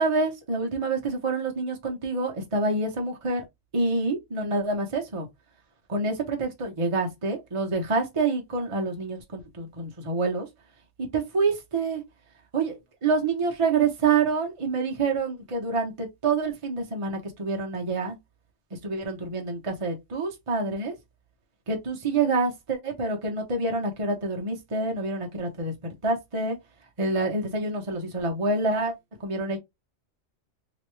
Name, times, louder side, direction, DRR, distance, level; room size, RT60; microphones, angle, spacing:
voice 1, 0.0-3.4 3.7-5.3 5.9-10.5 11.1-12.0 12.5-12.7 13.0-18.2 18.8-20.9 21.7-25.7 26.0-26.6 27.0-28.9 29.2-29.6, right 3 dB, 30° right, 0.7 m, -27 dB
3.0 x 2.9 x 3.1 m
omnidirectional pair, 1.4 m